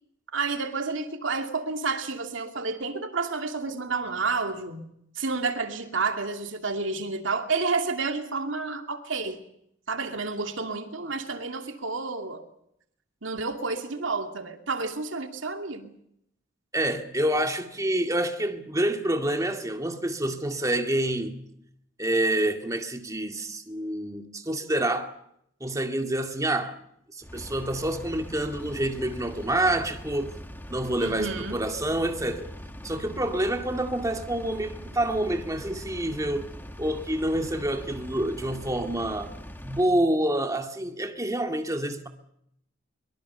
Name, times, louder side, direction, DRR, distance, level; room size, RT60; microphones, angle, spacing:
voice 1, 0.3-4.9 5.2-9.4 9.9-12.5 13.2-15.9 31.0-31.6, right 4 dB, 70° right, 2.6 m, -30 dB
voice 2, 16.7-21.4 22.0-25.1 25.6-26.8 27.1-30.4 30.7-32.5 32.8-36.5 36.8-39.3 39.6-42.1, right 1 dB, 15° right, 2.0 m, -27 dB
Engine, 27.2-39.9, equal, 10° left, 2.0 m, -42 dB
24.0 x 23.0 x 6.9 m
head